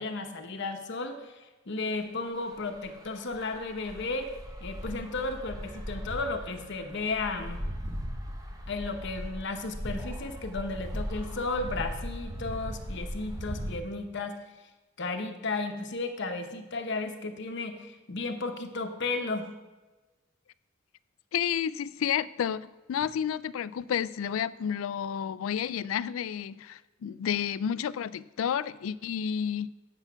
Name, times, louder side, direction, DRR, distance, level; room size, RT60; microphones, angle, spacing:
voice 1, 0.0-4.3 4.6-7.7 8.7-14.4 15.0-19.5, left 3 dB, 60° left, 5 dB, 1.0 m, -34 dB
sound 1, 2.4-13.8, equal, 20° right, 0.9 m, -38 dB
voice 2, 21.3-29.7, left 8 dB, 80° left, 18 dB, 0.3 m, -31 dB
8.1 x 6.9 x 5.7 m, 1.2 s
head